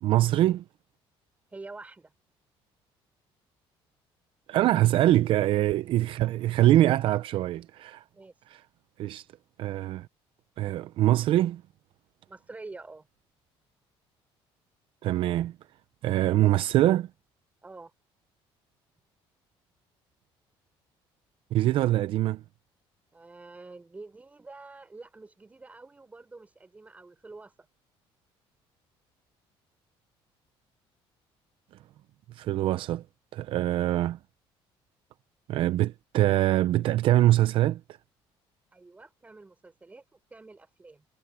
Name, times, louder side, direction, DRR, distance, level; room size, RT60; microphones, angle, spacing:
voice 1, 0.0-0.6 4.5-8.0 8.5-8.6 9.0-9.3 9.6-10.1 10.6-11.6 15.0-15.5 16.0-17.1 21.5-22.4 32.3-33.0 33.3-34.2 35.5-37.8, right 14 dB, 60° right, 0.6 m, -23 dB
voice 2, 1.5-2.1 8.1-8.3 12.3-13.1 17.6-17.9 23.1-27.7 38.7-41.1, right 3 dB, 15° right, 5.4 m, -47 dB
cardioid pair, 145°, 10 cm